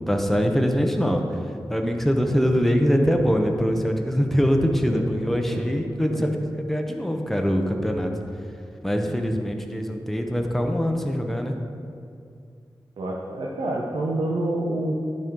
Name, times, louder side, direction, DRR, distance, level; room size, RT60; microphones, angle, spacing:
voice 1, 0.1-1.2 1.7-6.3 6.6-8.1 8.8-11.6, equal, 5° left, 3 dB, 0.8 m, -23 dB
voice 2, 13.0-15.0, right 1 dB, 85° right, -3 dB, 0.8 m, -27 dB
11.5 x 5.3 x 3.8 m, 2.4 s
wide cardioid pair, 80°, 8 cm